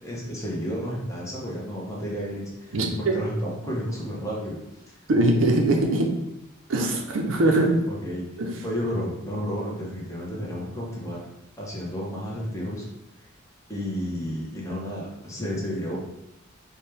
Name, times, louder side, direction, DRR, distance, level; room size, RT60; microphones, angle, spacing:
voice 1, 0.0-4.6 7.9-8.2 8.6-11.2 11.6-12.9 13.7-16.0, equal, 15° left, -4 dB, 0.8 m, -31 dB
voice 2, 2.7-3.2 5.1-6.1 6.7-7.8 8.4-8.5, right 2 dB, 65° right, 2 dB, 0.6 m, -21 dB
4.5 x 2.2 x 3.3 m, 0.87 s
head